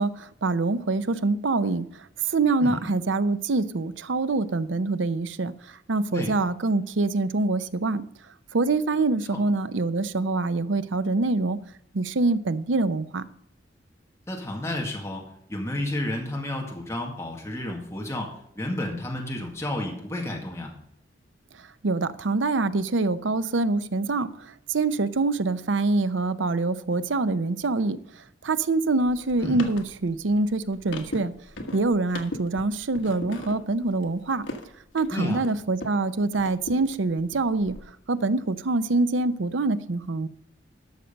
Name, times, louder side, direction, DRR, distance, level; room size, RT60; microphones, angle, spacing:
voice 1, 0.0-8.0 8.5-11.6 11.9-13.2 21.6-31.3 31.7-34.5 34.9-37.8 38.1-40.3, right 3 dB, 90° right, 0.7 m, -25 dB
voice 2, 14.3-15.2 15.5-20.7 29.4-29.6 35.1-35.4, left 1 dB, 15° left, 1.9 m, -31 dB
sound 1, 29.0-36.0 36.3-37.8, left 1 dB, 80° left, 1.5 m, -39 dB
12.5 x 6.6 x 5.2 m
head